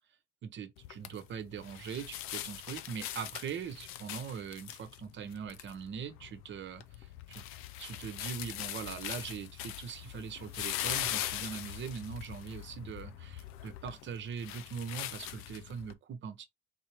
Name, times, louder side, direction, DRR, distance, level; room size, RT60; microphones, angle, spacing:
voice 1, 0.4-7.4 7.8-16.5, right 7 dB, 65° right, 0.9 m, -41 dB
sound 1, 0.8-15.9, left 13 dB, 80° left, 0.5 m, -41 dB
4.1 x 2.8 x 3.1 m
hypercardioid pair, 45°, 21 cm